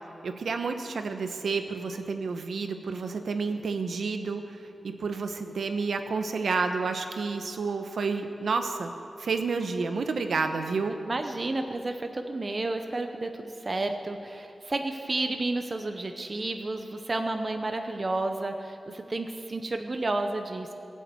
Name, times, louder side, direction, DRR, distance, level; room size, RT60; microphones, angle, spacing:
voice 1, 0.2-8.9 9.2-11.0, right 4 dB, 75° right, 7 dB, 1.0 m, -30 dB
voice 2, 11.1-20.7, right 2 dB, 30° right, 6 dB, 0.7 m, -31 dB
19.5 x 7.5 x 8.3 m, 2.8 s
wide cardioid pair, 170°, 0 cm